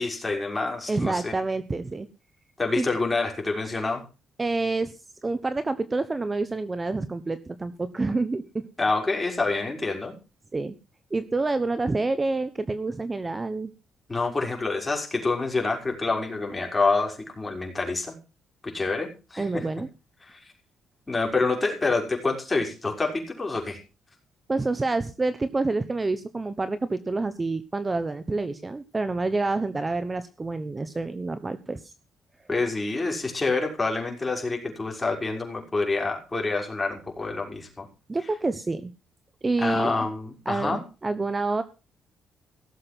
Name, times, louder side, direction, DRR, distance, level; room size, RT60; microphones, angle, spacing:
voice 1, 0.0-1.3 2.6-4.0 8.8-10.1 14.1-18.1 18.6-19.7 20.2-20.4 21.1-23.8 32.5-37.9 39.6-40.8, left 3 dB, 20° left, 1 dB, 5.9 m, -27 dB
voice 2, 0.9-2.1 2.7-2.9 4.4-5.0 5.2-8.6 10.5-10.7 11.1-13.7 19.4-19.9 24.5-31.9 38.1-38.9 39.4-39.9 40.5-41.6, right 3 dB, 25° right, 12 dB, 1.1 m, -28 dB
17.5 x 7.6 x 6.0 m, 0.32 s
cardioid pair, 90°, 0 cm